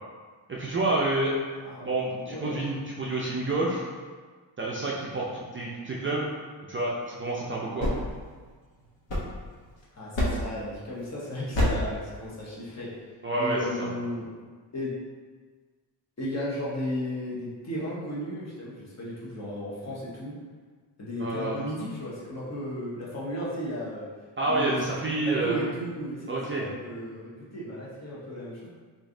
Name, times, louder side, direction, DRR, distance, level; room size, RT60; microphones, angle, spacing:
voice 1, 0.5-1.3 1.8-3.9 4.6-6.3 6.7-8.0 10.2-10.4 13.2-13.9 21.2-21.6 24.4-25.6 26.3-26.7, right 2 dB, 30° right, -5 dB, 0.4 m, -29 dB
voice 2, 2.2-2.7 9.9-13.0 13.4-14.3 14.7-14.9 16.2-20.4 21.0-24.1 24.5-28.7, equal, 35° left, -6 dB, 0.9 m, -35 dB
sound 1, 7.5-9.7 10.1-10.6 11.5-12.0, left 1 dB, 90° left, 1.0 m, -29 dB
3.1 x 2.5 x 3.7 m, 1.5 s
wide cardioid pair, 130°, 43 cm